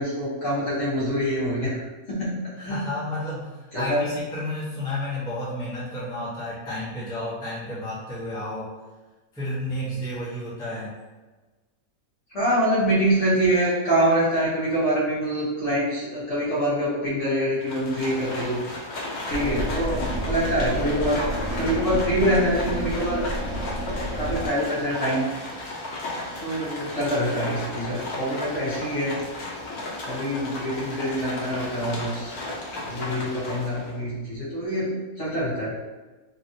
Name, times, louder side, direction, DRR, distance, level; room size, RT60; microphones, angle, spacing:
voice 1, 0.0-2.9 3.7-4.0 12.3-18.6 19.3-23.3 24.1-25.3 26.4-29.2 30.0-32.3 32.8-35.7, equal, 55° left, -9 dB, 1.3 m, -25 dB
voice 2, 2.5-8.7 9.3-10.9, left 1 dB, 5° left, -10 dB, 0.7 m, -31 dB
Livestock farm animals working animals, 17.6-34.0, left 2 dB, 85° left, 1.2 m, -34 dB
sound 1, 19.3-24.5, equal, 65° right, 1.0 m, -30 dB
3.3 x 2.3 x 2.7 m, 1.2 s
omnidirectional pair, 1.6 m